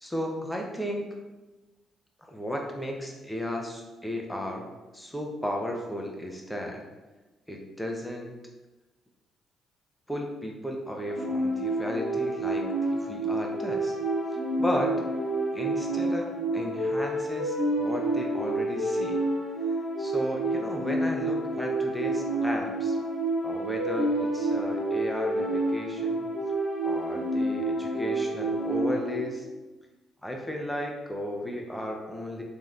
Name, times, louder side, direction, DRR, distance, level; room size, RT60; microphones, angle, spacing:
voice 1, 0.0-1.1 2.3-4.7 4.9-6.8 7.5-8.3 10.1-12.6 13.0-14.0 14.6-14.9 15.5-16.2 16.5-19.2 20.0-23.0 23.4-26.3 26.8-29.5 30.2-32.4, equal, 5° left, 1 dB, 0.6 m, -34 dB
sound 1, 11.1-29.2, right 1 dB, 75° left, 1.0 m, -29 dB
3.1 x 2.7 x 2.4 m, 1.1 s
cardioid pair, 90°, 0 cm